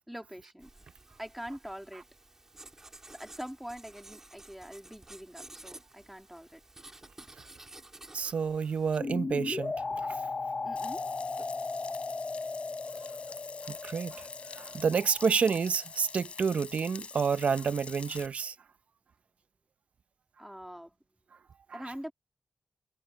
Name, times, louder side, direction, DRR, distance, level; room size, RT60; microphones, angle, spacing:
voice 1, 0.1-0.7 1.2-2.0 3.1-6.6 10.6-11.1 20.4-20.9 21.7-22.1, equal, 5° right, 2.4 m, -43 dB
Writing, 0.6-9.0, right 2 dB, 20° right, 2.9 m, -52 dB
voice 2, 8.1-9.7 13.7-14.3 14.5-18.5 21.7-21.9, right 6 dB, 60° right, 0.6 m, -29 dB
sound 1, 9.0-15.8, left 3 dB, 30° left, 0.5 m, -37 dB
Frying (food), 10.8-18.3, left 5 dB, 55° left, 5.4 m, -46 dB
wide cardioid pair, 160°, 3 cm